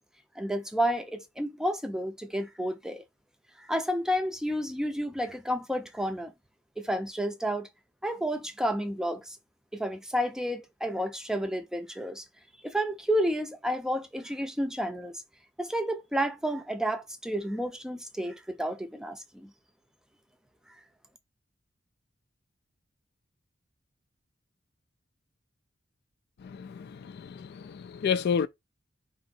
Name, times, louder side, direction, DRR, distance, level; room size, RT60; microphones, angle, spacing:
voice 1, 0.4-3.0 3.6-6.3 6.8-7.7 8.0-9.4 9.7-12.2 12.6-15.2 15.6-19.5, equal, 5° right, 0.5 m, -31 dB
voice 2, 26.4-28.5, left 6 dB, 55° left, 0.3 m, -31 dB
3.8 x 2.7 x 4.3 m
head